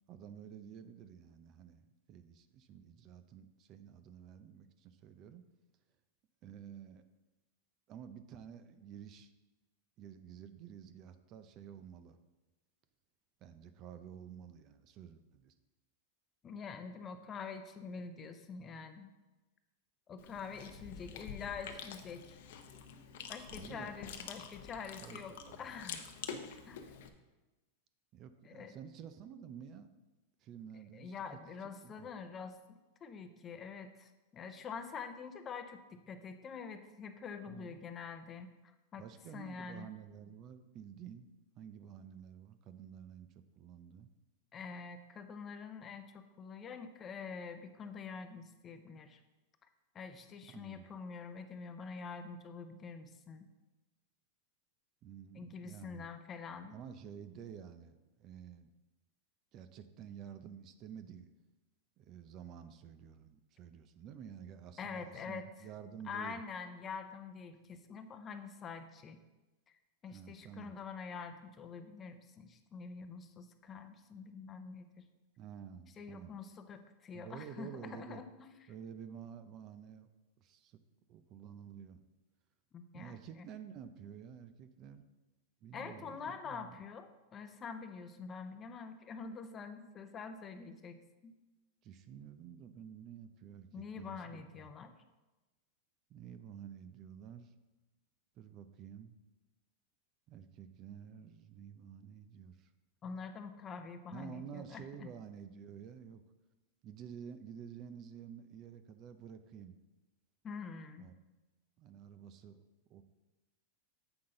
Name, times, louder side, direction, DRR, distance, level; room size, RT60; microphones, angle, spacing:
voice 1, 0.1-5.4 6.4-7.0 7.9-9.3 10.0-12.2 13.4-15.5 23.5-23.9 25.0-25.6 28.1-29.9 30.4-31.1 31.8-32.1 37.5-37.8 39.0-41.3 41.6-43.3 43.6-44.1 50.4-50.9 55.0-56.1 56.7-58.7 59.5-61.3 62.0-66.4 70.1-70.8 75.4-76.3 77.1-78.2 78.7-80.1 80.4-80.8 81.1-82.0 82.9-85.0 85.6-86.8 91.8-94.7 96.1-97.5 98.4-99.1 100.3-102.7 104.1-106.2 106.8-109.8 111.0-111.1 111.8-112.6 112.9-113.0, right 8 dB, 40° right, 10 dB, 0.5 m, -50 dB
voice 2, 16.4-19.1 20.1-22.4 23.3-26.0 26.7-26.8 28.4-28.8 30.9-38.5 38.9-39.0 39.3-39.9 44.5-49.2 49.9-53.5 55.4-56.8 64.8-65.5 66.1-69.2 70.0-75.0 76.0-78.5 82.7-83.5 85.7-91.0 91.2-91.3 93.7-94.9 103.0-105.1 110.4-111.1, left 5 dB, 25° left, 8 dB, 0.6 m, -46 dB
Chewing mastication, 20.2-27.1, left 7 dB, 70° left, 0.8 m, -47 dB
7.9 x 5.7 x 3.8 m, 1.1 s
hypercardioid pair, 120°, 0 cm